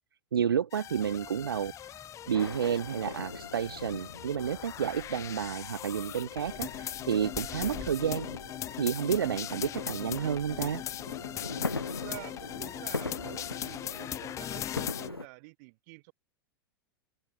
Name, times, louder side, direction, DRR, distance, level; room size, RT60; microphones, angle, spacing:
voice 1, 0.3-1.7 2.3-8.3 8.8-10.8, right 8 dB, 70° right, 1.2 m, -30 dB
sound 1, 0.7-15.1, left 11 dB, 25° left, 0.6 m, -40 dB
sound 2, 0.9-14.4, left 2 dB, 5° left, 5.9 m, -55 dB
sound 3, 2.3-15.3, left 3 dB, 85° left, 1.5 m, -41 dB
voice 2, 11.9-16.1, right 30 dB, 45° right, 5.0 m, -48 dB
open air
figure-of-eight pair, 95°, 12 cm